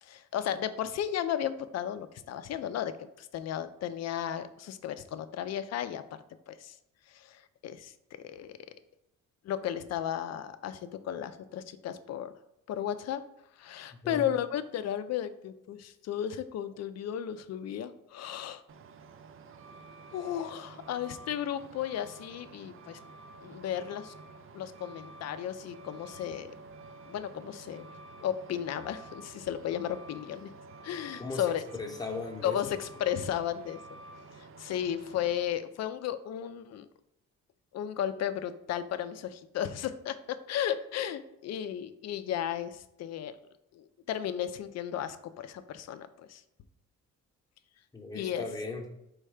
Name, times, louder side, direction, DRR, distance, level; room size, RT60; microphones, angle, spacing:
voice 1, 0.0-6.0 6.5-6.8 7.1-7.9 8.2-8.6 9.4-12.3 12.7-13.2 13.6-18.6 20.1-23.0 23.4-24.1 24.5-26.5 27.1-27.9 28.2-30.5 30.8-31.6 32.4-33.8 34.6-36.9 37.7-43.4 43.7-46.4 48.1-48.4, left 10 dB, 60° left, 11 dB, 0.4 m, -34 dB
voice 2, 13.9-14.2 31.2-32.6 47.9-48.8, left 3 dB, 15° left, 1 dB, 0.8 m, -38 dB
Truck, 18.7-35.4, right 3 dB, 45° right, 0.4 m, -50 dB
4.7 x 2.2 x 4.8 m, 0.84 s
cardioid pair, 90°, 30 cm